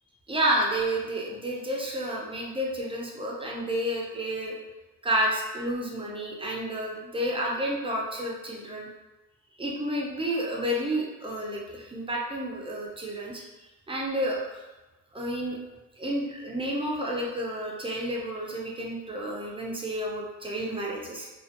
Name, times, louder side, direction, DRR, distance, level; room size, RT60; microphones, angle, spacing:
voice 1, 0.3-4.5 5.0-8.9 9.6-13.4 13.9-14.5 15.1-15.6 16.0-21.3, right 1 dB, 15° right, -3 dB, 0.4 m, -30 dB
2.5 x 2.2 x 2.3 m, 1.1 s
wide cardioid pair, 150°, 34 cm